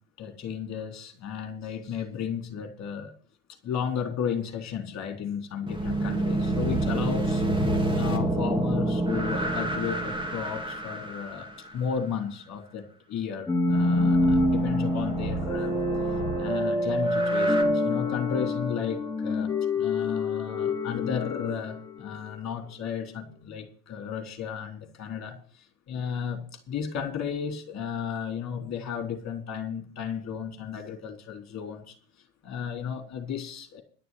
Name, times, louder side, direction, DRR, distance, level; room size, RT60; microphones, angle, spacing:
voice 1, 0.2-3.1 3.6-7.4 8.0-11.5 11.7-15.8 16.4-19.5 19.7-25.4 25.9-26.4 26.7-32.0 32.4-33.8, left 7 dB, 35° left, 4.0 m, -33 dB
sound 1, 5.7-11.7 13.7-17.6, right 2 dB, 10° right, 2.9 m, -29 dB
sound 2, 13.5-22.4, left 1 dB, 5° left, 3.2 m, -26 dB
12.0 x 6.8 x 8.9 m
hypercardioid pair, 80°, 46 cm